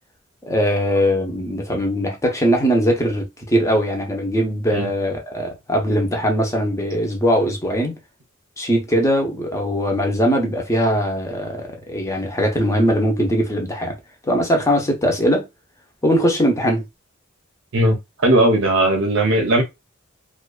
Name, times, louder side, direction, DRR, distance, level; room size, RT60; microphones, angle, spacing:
voice 1, 0.5-8.0 8.6-14.0 14.2-15.5 16.0-16.8, equal, 15° left, 0.6 m, -20 dB
voice 2, 18.2-19.6, right 1 dB, 65° right, 0.6 m, -17 dB
2.5 x 2.2 x 2.3 m
head